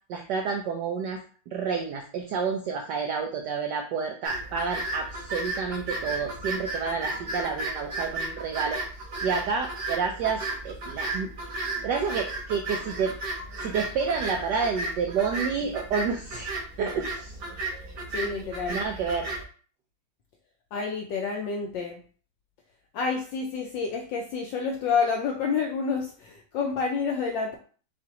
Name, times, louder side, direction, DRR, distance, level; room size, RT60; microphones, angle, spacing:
voice 1, 0.1-1.2 1.5-8.8 9.2-11.3 11.8-13.1 13.6-16.5 16.8-17.3 18.7-19.3, right 5 dB, 80° right, 3 dB, 0.9 m, -29 dB
sound 1, 4.2-19.4, right 2 dB, 50° right, 1.3 m, -34 dB
voice 2, 18.1-18.8 20.7-22.0 22.9-27.6, left 5 dB, 70° left, 2 dB, 1.1 m, -29 dB
7.0 x 2.4 x 2.8 m, 0.42 s
omnidirectional pair, 2.4 m